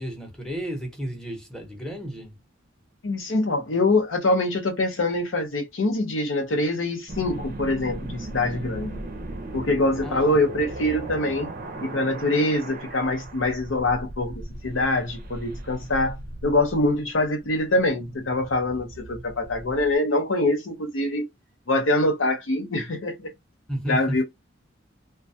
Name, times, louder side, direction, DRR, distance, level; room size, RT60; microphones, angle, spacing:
voice 1, 0.0-2.4 10.0-10.5 23.7-24.2, right 1 dB, 5° left, 0.8 m, -33 dB
voice 2, 3.0-9.0 9.5-11.5 11.8-16.2 16.4-21.2 21.7-23.3 23.9-24.2, left 2 dB, 80° left, 0.7 m, -24 dB
sound 1, 7.1-20.0, right 2 dB, 50° right, 0.5 m, -38 dB
2.2 x 2.2 x 2.6 m
head